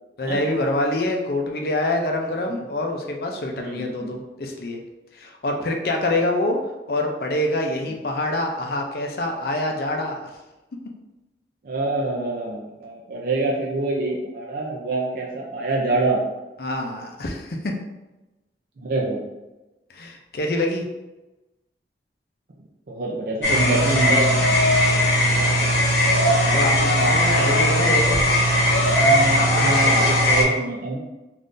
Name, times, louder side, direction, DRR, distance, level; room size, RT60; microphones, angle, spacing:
voice 1, 0.2-4.8 5.1-6.6 6.9-10.3 16.6-17.7 19.9-20.8 25.4-25.6 26.5-28.4 29.4-30.1, left 1 dB, 55° left, 2 dB, 0.5 m, -26 dB
voice 2, 3.5-4.1 11.6-16.2 18.8-19.2 22.9-24.4 25.2-25.5 28.8-31.0, right 2 dB, 50° right, -3 dB, 0.4 m, -26 dB
sound 1, 23.4-30.4, equal, 90° left, 0.9 m, -18 dB
3.6 x 2.5 x 2.5 m, 1.1 s
head